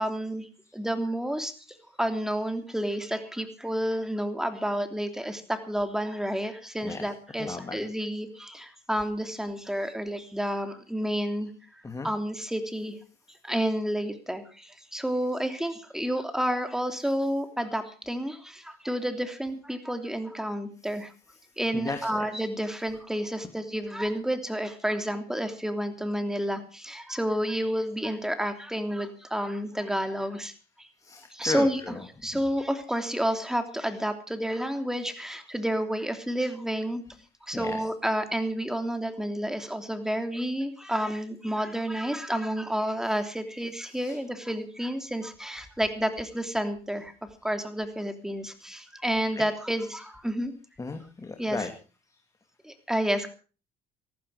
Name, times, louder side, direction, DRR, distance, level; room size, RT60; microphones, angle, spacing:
voice 1, 0.0-1.5 2.0-11.5 12.0-13.0 13.4-21.1 21.6-30.9 31.3-31.9 32.2-37.0 37.4-47.1 47.4-50.5 51.4-51.7 52.6-53.3, equal, 5° right, 7 dB, 3.1 m, -30 dB
voice 2, 6.8-7.1 7.4-7.8 11.8-12.1 15.1-15.3 20.9-21.0 21.3-21.4 21.7-22.3 31.0-32.6 37.5-37.8 43.7-44.2 49.4-49.5 50.8-51.7, left 3 dB, 20° left, 5 dB, 2.6 m, -36 dB
19.0 x 14.5 x 4.9 m, 0.37 s
cardioid pair, 110°, 17 cm